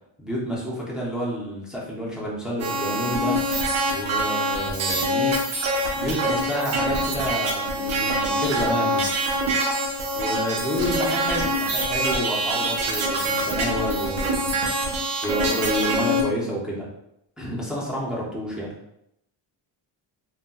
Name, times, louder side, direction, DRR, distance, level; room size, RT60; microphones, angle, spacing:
voice 1, 0.2-3.4 3.9-5.4 5.9-9.1 10.1-14.5 15.2-16.9 17.4-18.7, equal, ahead, -6 dB, 0.5 m, -29 dB
sound 1, 2.6-16.2, right 1 dB, 80° right, 0.8 m, -25 dB
3.8 x 2.1 x 2.3 m, 0.79 s
cardioid pair, 165°, 47 cm